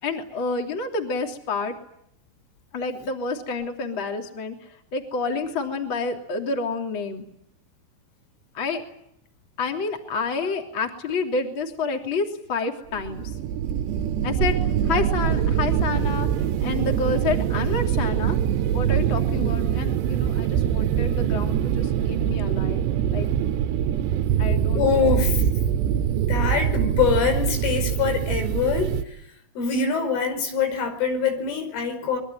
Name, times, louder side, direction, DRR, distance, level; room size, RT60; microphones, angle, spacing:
voice 1, 0.0-1.7 2.7-4.6 4.9-7.2 8.5-8.8 9.6-13.3 14.2-14.6 14.8-16.3 16.6-18.4 18.7-23.3 24.4-25.2, left 4 dB, 30° left, 4 dB, 3.3 m, -29 dB
sound 1, 12.9-29.0, right 9 dB, 75° right, 3.2 m, -23 dB
voice 2, 24.7-25.4 26.1-28.9 29.6-32.2, left 5 dB, 90° left, 7 dB, 7.6 m, -24 dB
26.0 x 23.0 x 8.9 m, 0.77 s
omnidirectional pair, 5.4 m